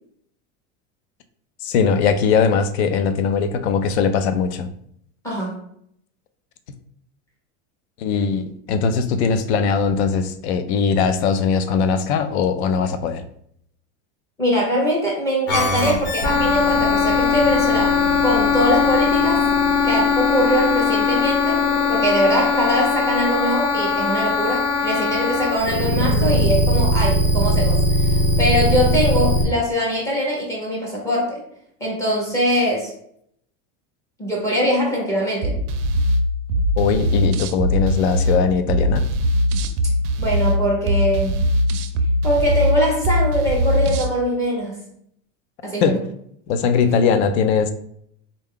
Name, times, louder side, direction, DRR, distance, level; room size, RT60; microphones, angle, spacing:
voice 1, 1.6-4.7 8.0-13.2 36.8-39.0 45.8-45.9 46.5-47.7, left 6 dB, 60° left, 10 dB, 0.5 m, -20 dB
voice 2, 5.2-5.6 14.4-19.4 19.8-21.6 21.9-31.4 31.8-32.9 34.2-35.6 40.2-41.3 42.2-44.9 45.6-46.0 46.8-47.0, equal, 10° left, -4 dB, 0.6 m, -22 dB
sound 1, 15.5-29.4, left 3 dB, 85° left, 1.3 m, -19 dB
sound 2, 35.4-44.1, equal, 75° right, 0.5 m, -21 dB
3.8 x 2.2 x 3.6 m, 0.68 s
supercardioid pair, 170°, 37 cm